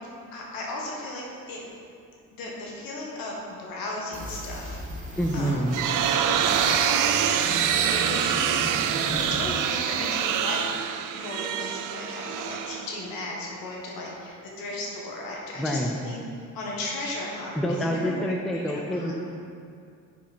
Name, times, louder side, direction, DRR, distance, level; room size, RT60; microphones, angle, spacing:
voice 1, 0.3-1.6 2.3-4.8 5.3-5.6 5.9-8.6 9.2-10.6 11.1-16.2 16.5-19.1, left 2 dB, 85° left, -2 dB, 1.4 m, -36 dB
sound 1, 4.1-10.1, right 1 dB, 20° right, 1.5 m, -36 dB
voice 2, 5.2-5.8 15.6-16.0 17.5-19.1, equal, ahead, 2 dB, 0.4 m, -27 dB
sound 2, 5.4-13.2, right 9 dB, 65° right, 0.5 m, -26 dB
5.1 x 4.6 x 5.0 m, 2.4 s
cardioid pair, 95°, 34 cm